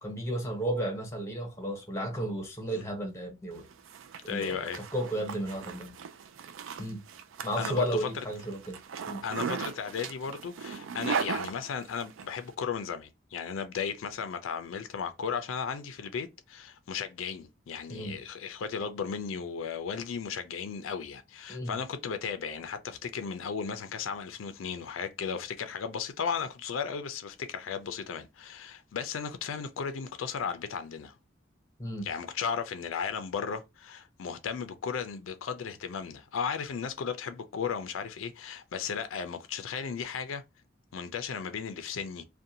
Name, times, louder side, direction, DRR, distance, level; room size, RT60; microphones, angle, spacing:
voice 1, 0.0-3.6 4.2-4.7 4.9-6.0 6.8-7.0 7.4-8.8 9.1-9.2 17.9-18.2 21.5-21.7 31.8-32.1, right 1 dB, 15° left, 0.8 m, -33 dB
Zipper (clothing), 3.6-12.3, right 6 dB, 80° right, 0.4 m, -37 dB
voice 2, 4.3-4.9 7.6-8.2 9.2-31.1 32.0-40.4 40.9-42.2, left 6 dB, 80° left, 0.4 m, -35 dB
2.6 x 2.2 x 2.7 m
head